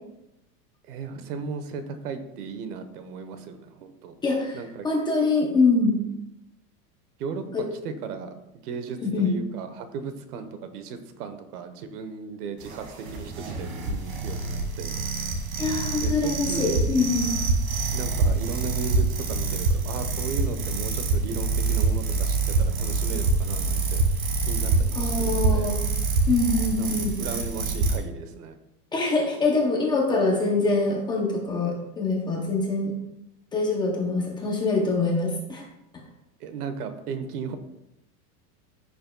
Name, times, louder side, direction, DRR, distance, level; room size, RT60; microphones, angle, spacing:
voice 1, 0.9-4.1 4.5-4.9 7.2-8.3 8.6-15.0 16.0-16.9 17.9-24.0 24.4-25.8 26.8-26.9 27.2-28.6 36.4-37.6, right 5 dB, 75° right, 9 dB, 1.2 m, -36 dB
voice 2, 4.2-5.9 7.5-7.6 9.0-9.3 15.6-17.3 24.9-25.8 26.3-27.1 28.9-32.9 33.5-35.6, left 3 dB, 10° left, -1 dB, 0.6 m, -24 dB
sound 1, 12.6-28.0, right 3 dB, 55° right, 2.1 m, -26 dB
14.5 x 6.6 x 2.3 m, 0.88 s
supercardioid pair, 170°, 47 cm